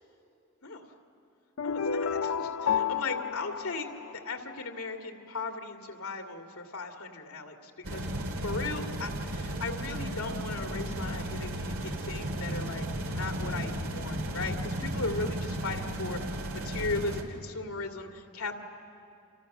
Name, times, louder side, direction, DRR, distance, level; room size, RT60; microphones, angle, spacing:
voice 1, 1.6-8.1 8.4-18.5, left 3 dB, 85° left, 3 dB, 2.4 m, -37 dB
sound 1, 1.6-4.6, left 7 dB, 65° left, 0.6 m, -31 dB
sound 2, 7.8-17.2, right 1 dB, 75° right, 2.4 m, -34 dB
29.5 x 27.5 x 6.7 m, 2.7 s
head